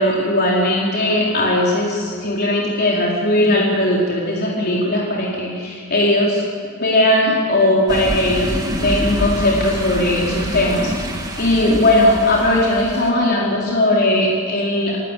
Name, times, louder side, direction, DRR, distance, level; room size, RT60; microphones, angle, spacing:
voice 1, 0.0-6.4 6.8-8.5 8.8-10.9 11.4-15.0, left 1 dB, 45° left, -4 dB, 4.3 m, -18 dB
sound 1, 7.9-13.1, equal, 15° right, 2.6 m, -26 dB
30.0 x 16.5 x 8.4 m, 2.3 s
head